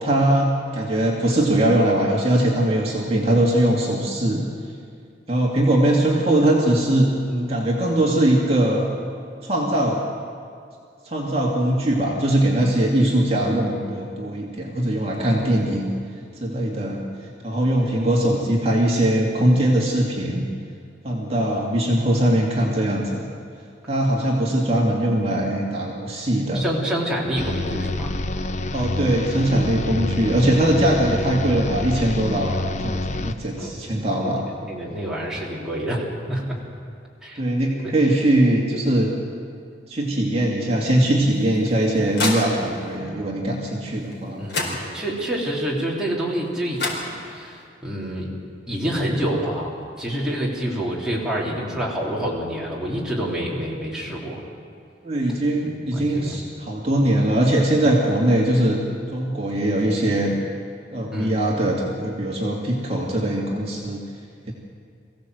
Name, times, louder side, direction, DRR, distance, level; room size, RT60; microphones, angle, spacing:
voice 1, 0.0-4.5 5.3-8.9 9.4-10.0 11.1-15.9 16.4-17.0 17.4-20.5 21.0-23.2 23.9-26.6 28.7-34.4 37.4-39.1 39.9-44.4 55.0-58.8 59.1-60.3 60.9-64.0 64.5-64.6, right 1 dB, 35° right, -2 dB, 2.4 m, -21 dB
voice 2, 15.2-15.6 26.5-28.1 33.6-33.8 34.2-34.3 34.6-36.6 37.2-37.4 42.1-43.3 44.4-46.9 47.3-48.3 48.7-54.4 55.9-56.4 61.1-61.3, equal, 5° right, -6 dB, 3.5 m, -28 dB
sound 1, 27.4-33.6, left 2 dB, 40° left, 0.6 m, -27 dB
sound 2, 41.3-43.0 44.1-44.2 44.5-45.3 46.4-46.5 46.8-47.6, left 2 dB, 70° left, 4.6 m, -29 dB
23.5 x 16.0 x 7.9 m, 2.3 s
head